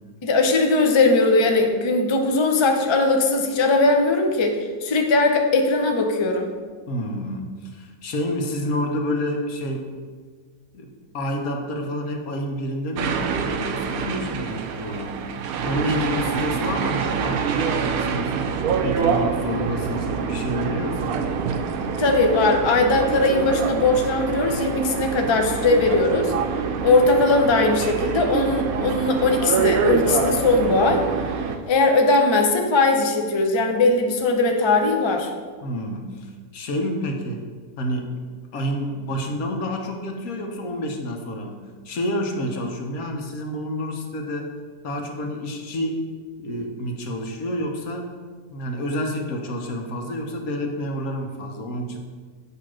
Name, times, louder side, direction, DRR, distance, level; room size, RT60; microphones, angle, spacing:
voice 1, 0.2-6.5 22.0-26.3 26.8-31.0 31.7-35.3, left 3 dB, 40° left, 3 dB, 0.3 m, -19 dB
voice 2, 6.9-9.9 10.7-15.2 15.6-18.3 18.8-21.3 35.6-37.4 37.8-38.2 38.5-41.6 41.8-44.5 44.8-46.0 46.4-48.1 48.5-52.0, equal, 80° left, 3 dB, 1.4 m, -29 dB
sound 1, 13.0-31.6, right 6 dB, 80° right, 1.0 m, -26 dB
8.3 x 2.9 x 6.1 m, 1.5 s
omnidirectional pair, 1.5 m